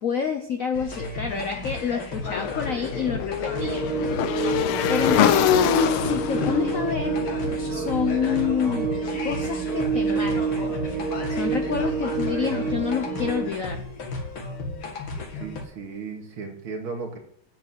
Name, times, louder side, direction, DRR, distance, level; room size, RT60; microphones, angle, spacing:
voice 1, 0.0-3.8 4.9-5.5 6.0-7.1 7.7-8.9 9.2-10.8 11.4-13.8, left 7 dB, 50° left, 6 dB, 1.0 m, -28 dB
sound 1, 0.7-15.6, left 2 dB, 70° left, 2.8 m, -34 dB
Motorcycle / Engine, 2.2-8.4, left 10 dB, 90° left, 1.6 m, -25 dB
sound 2, 3.5-13.5, right 6 dB, 90° right, 1.9 m, -28 dB
voice 2, 5.1-5.4 15.4-17.2, right 4 dB, 70° right, 2 dB, 3.0 m, -34 dB
9.1 x 8.1 x 8.0 m, 0.65 s
omnidirectional pair, 2.3 m